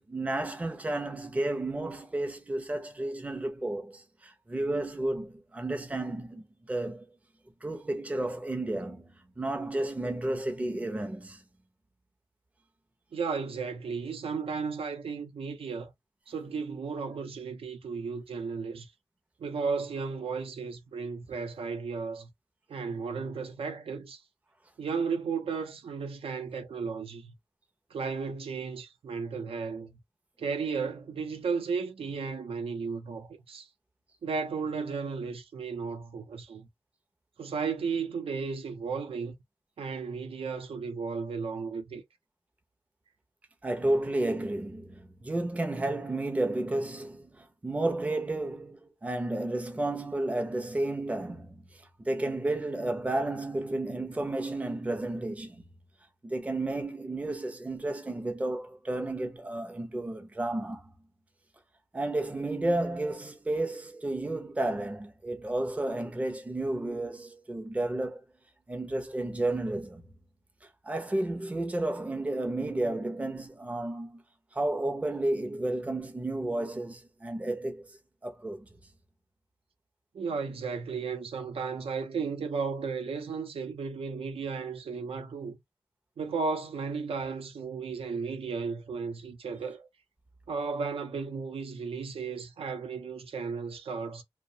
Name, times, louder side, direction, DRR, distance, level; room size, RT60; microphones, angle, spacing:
voice 1, 0.0-7.1 7.6-11.4 43.6-55.6 56.2-60.9 61.9-68.2 68.7-70.0 70.8-74.2 74.5-78.7, right 2 dB, 15° right, 0.5 m, -32 dB
voice 2, 13.1-15.9 16.3-18.9 19.4-22.3 22.7-24.2 24.8-27.3 27.9-30.0 30.4-33.7 34.2-36.7 37.4-39.4 39.8-42.0 80.1-85.6 86.2-89.9 90.5-94.2, right 5 dB, 75° right, 0.6 m, -34 dB
2.7 x 2.1 x 2.6 m
wide cardioid pair, 155°, 10 cm